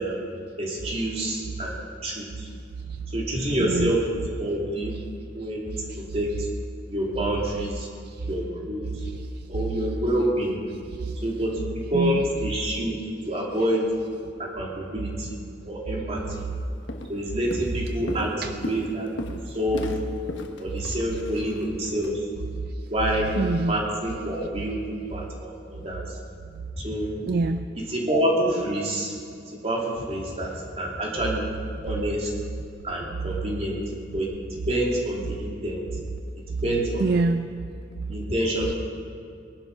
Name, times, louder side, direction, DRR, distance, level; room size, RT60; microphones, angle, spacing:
voice 1, 0.0-1.8 2.0-2.5 3.1-4.9 5.3-5.6 6.0-6.3 6.9-7.9 8.3-8.9 9.5-10.6 11.2-13.0 13.3-13.8 14.4-15.4 15.7-16.5 17.1-19.9 20.6-22.2 22.9-23.3 23.6-26.2 26.8-27.1 27.8-29.1 29.5-31.4 31.8-32.3 32.8-33.8 34.1-34.3 34.7-35.8 36.6-37.1 38.1-38.7, right 1 dB, 30° right, -2 dB, 2.8 m, -27 dB
voice 2, 3.6-4.0 5.9-6.0 8.0-8.3 8.9-9.5 10.9-11.2 11.9-12.2 15.0-15.1 18.4-18.5 20.9-21.0 23.4-23.8 27.2-27.6 37.0-37.5, right 3 dB, 55° right, 10 dB, 0.4 m, -26 dB
Walk footsteps, 16.3-16.5 16.9-17.2 17.5-22.1, left 1 dB, 65° left, 1.3 m, -37 dB
21.0 x 11.5 x 5.5 m, 2.5 s
head